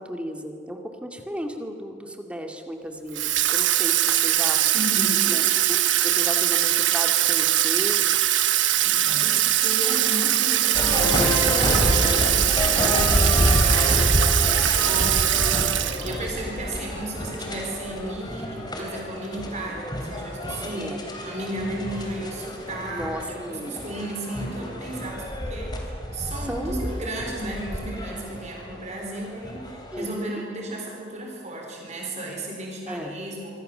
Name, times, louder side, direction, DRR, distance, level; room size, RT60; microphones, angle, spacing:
voice 1, 0.0-4.6 5.0-5.4 5.7-8.0 20.7-21.0 22.9-24.0 26.5-26.8 29.9-30.5 32.9-33.1, equal, 5° right, 3 dB, 2.3 m, -34 dB
Water tap faucet / Sink (filling or washing), 3.1-16.3, right 13 dB, 80° right, 1.2 m, -22 dB
voice 2, 4.7-5.5 8.8-33.6, right 1 dB, 40° right, 0 dB, 4.2 m, -34 dB
sound 1, 10.7-30.1, left 1 dB, 25° left, 3.7 m, -28 dB
26.5 x 24.5 x 6.9 m, 2.5 s
head